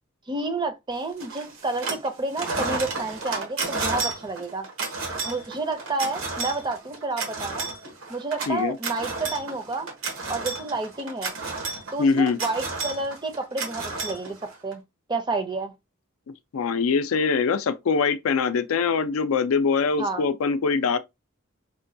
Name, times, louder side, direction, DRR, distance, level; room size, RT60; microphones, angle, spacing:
voice 1, 0.3-4.7 5.2-7.7 8.1-9.9 10.3-11.3 11.9-14.4 14.6-14.8 15.1-15.7 20.0-20.2, right 3 dB, 20° right, 0.5 m, -30 dB
sound 1, 1.2-2.1 2.3-14.7, right 3 dB, 80° right, 1.1 m, -32 dB
voice 2, 8.5-8.8 12.0-12.4 16.3-21.0, left 5 dB, 85° left, 0.4 m, -23 dB
4.9 x 2.2 x 2.6 m
head